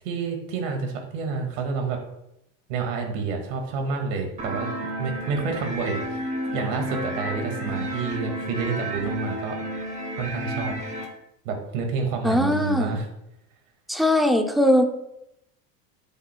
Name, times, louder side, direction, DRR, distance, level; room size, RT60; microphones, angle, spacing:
voice 1, 0.0-2.0 2.7-6.2 6.5-9.6 10.2-10.7 11.4-13.1, right 4 dB, 80° right, 3 dB, 2.0 m, -29 dB
sound 1, 4.4-11.0, right 1 dB, 20° right, 1.9 m, -31 dB
voice 2, 12.2-13.0 13.9-14.8, left 1 dB, ahead, 5 dB, 0.4 m, -20 dB
12.5 x 7.9 x 2.2 m, 0.83 s
cardioid pair, 160°, 37 cm